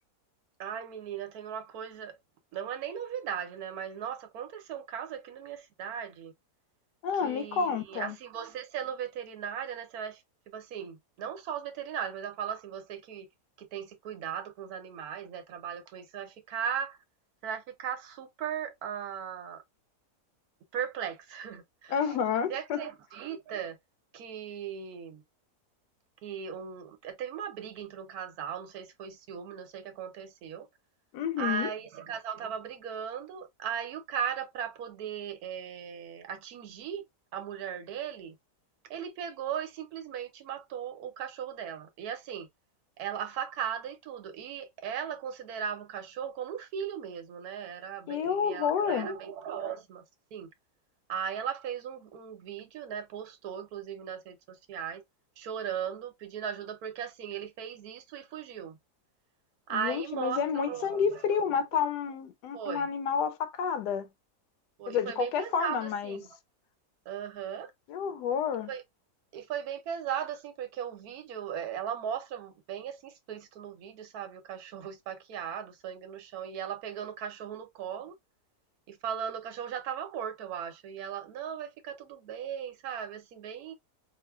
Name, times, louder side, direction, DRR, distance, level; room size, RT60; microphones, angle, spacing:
voice 1, 0.6-2.2 2.5-6.3 7.2-10.2 10.5-13.3 13.6-17.0 17.4-19.6 20.7-22.0 22.5-23.8 24.1-25.2 26.2-30.7 31.4-37.0 37.3-38.4 38.9-42.5 43.0-50.0 50.3-50.5 51.1-55.0 55.4-58.8 59.7-61.4 62.5-62.9 64.8-66.2 67.1-67.7 68.7-68.8 69.3-78.2 78.9-83.7, right 8 dB, 70° right, 1.2 m, -37 dB
voice 2, 7.0-8.2 21.9-22.8 31.1-31.7 48.1-49.1 59.7-64.1 64.9-66.2 67.9-68.7, left 7 dB, 90° left, 1.2 m, -30 dB
4.4 x 2.1 x 2.3 m
omnidirectional pair, 1.7 m